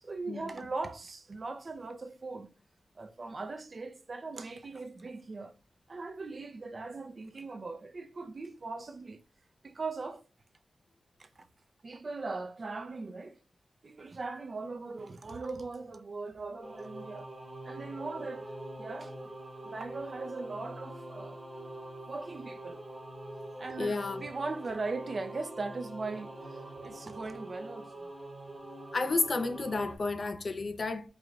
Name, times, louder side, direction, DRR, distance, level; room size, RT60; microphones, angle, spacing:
voice 1, 0.0-2.5 3.0-5.5 5.9-9.2 9.6-10.2 11.2-11.5 11.8-13.4 13.8-17.3 17.6-19.2 19.6-21.4 22.1-22.8 23.6-28.1, right 3 dB, 45° right, 0.5 m, -39 dB
Singing / Musical instrument, 16.6-30.0, right 1 dB, 20° right, 1.0 m, -45 dB
voice 2, 23.8-24.2 28.9-31.1, left 3 dB, 45° left, 0.6 m, -31 dB
4.8 x 3.0 x 2.4 m
wide cardioid pair, 125°, 0 cm